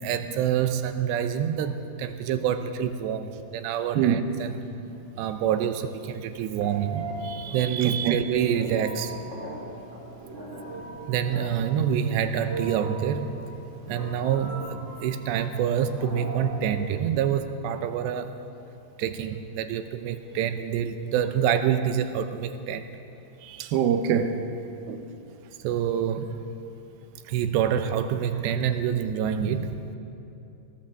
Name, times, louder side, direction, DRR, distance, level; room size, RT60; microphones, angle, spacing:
voice 1, 0.0-4.6 5.2-9.2 11.1-13.5 13.9-18.4 19.0-22.9 23.4-23.7 25.6-26.4 27.3-29.9, right 9 dB, 90° right, 3.1 m, -27 dB
Telephone, 6.0-17.2, right 2 dB, 15° right, 4.6 m, -39 dB
voice 2, 7.8-8.2 23.6-24.4 24.9-25.0, right 8 dB, 70° right, 2.7 m, -24 dB
20.5 x 18.5 x 7.7 m
omnidirectional pair, 4.9 m